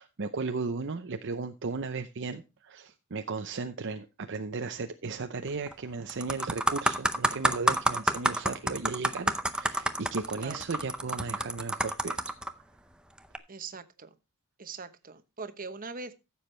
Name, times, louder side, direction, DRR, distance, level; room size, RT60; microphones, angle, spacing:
voice 1, 0.0-12.4, right 4 dB, 55° right, 7 dB, 0.7 m, -35 dB
sound 1, 5.5-5.7 6.1-12.5 13.2-13.4, right 1 dB, 5° right, 0.6 m, -29 dB
voice 2, 13.5-14.2 14.6-16.1, right 4 dB, 40° right, 10 dB, 1.0 m, -41 dB
14.5 x 7.2 x 3.2 m, 0.28 s
head